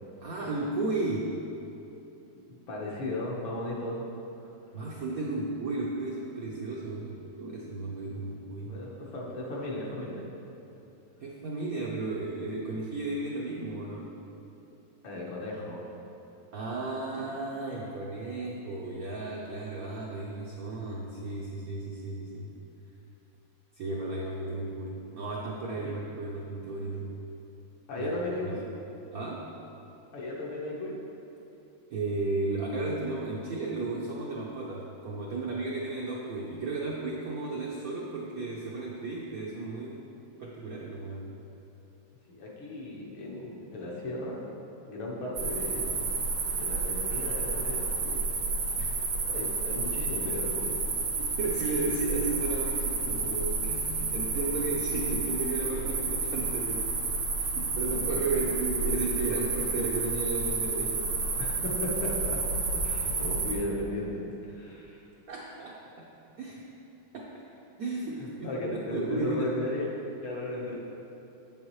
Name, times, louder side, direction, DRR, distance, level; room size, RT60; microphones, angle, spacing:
voice 1, 0.2-1.4 4.7-8.8 11.2-14.2 16.5-22.5 23.8-27.1 28.0-28.1 28.5-28.6 29.1-29.5 31.9-40.1 40.4-41.4 51.2-56.9 57.4-61.2 65.3-66.1 66.4-66.6 67.1-67.3 67.8-69.5, right 3 dB, 70° right, -3 dB, 0.8 m, -34 dB
voice 2, 2.7-4.0 8.6-10.3 15.0-15.8 25.7-25.9 27.9-28.7 30.1-31.0 42.3-44.4 44.9-48.2 49.2-50.7 58.3-58.4 61.4-62.4 62.8-65.0 68.2-69.9 70.2-70.7, left 1 dB, 75° left, -4 dB, 2.0 m, -36 dB
sound 1, 45.3-63.5, right 4 dB, 90° right, 2.0 m, -30 dB
7.8 x 7.2 x 3.1 m, 2.9 s
omnidirectional pair, 2.3 m